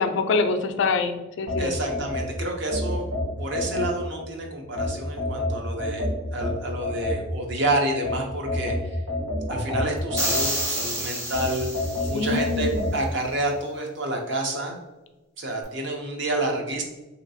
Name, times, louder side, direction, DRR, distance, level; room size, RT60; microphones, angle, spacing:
voice 1, 0.0-1.8 12.1-12.8, left 4 dB, 55° left, 6 dB, 0.3 m, -25 dB
sound 1, 1.5-4.3 4.8-7.5 8.0-10.8 11.3-13.0, left 2 dB, 75° right, 1.2 m, -29 dB
voice 2, 1.6-3.0 3.4-6.1 6.3-9.0 9.5-11.7 12.1-14.8 15.4-16.8, right 1 dB, 55° right, 1 dB, 0.6 m, -29 dB
sound 2, 10.2-12.5, right 1 dB, 15° right, 0.6 m, -29 dB
3.3 x 2.8 x 2.7 m, 1.0 s
head